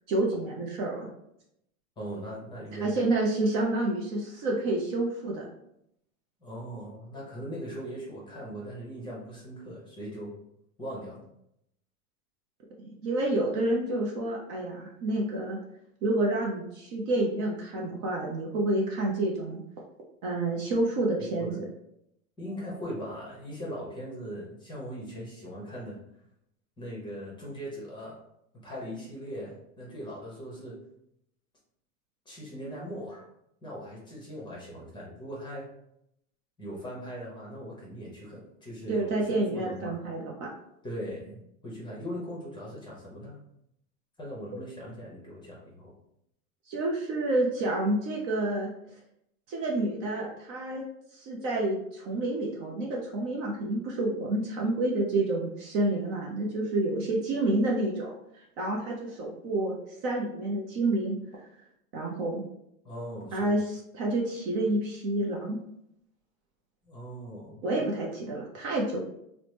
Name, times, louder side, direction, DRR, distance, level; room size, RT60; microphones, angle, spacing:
voice 1, 0.1-1.1 2.8-5.5 12.8-15.6 16.0-19.6 20.2-21.5 38.9-40.5 46.7-48.7 49.5-50.8 51.1-58.1 58.6-61.2 61.9-62.4 63.3-63.6 63.9-65.6 67.6-69.0, right 2 dB, 40° right, -1 dB, 0.5 m, -29 dB
voice 2, 2.0-2.9 6.4-10.3 10.8-11.2 21.2-21.6 22.4-26.0 26.8-28.2 28.6-30.8 32.3-33.3 33.6-35.7 36.6-40.0 40.8-43.4 44.2-45.9 62.8-63.5 66.8-67.9, equal, 10° left, -4 dB, 0.7 m, -40 dB
2.9 x 2.0 x 3.2 m, 0.77 s
supercardioid pair, 135°, 42 cm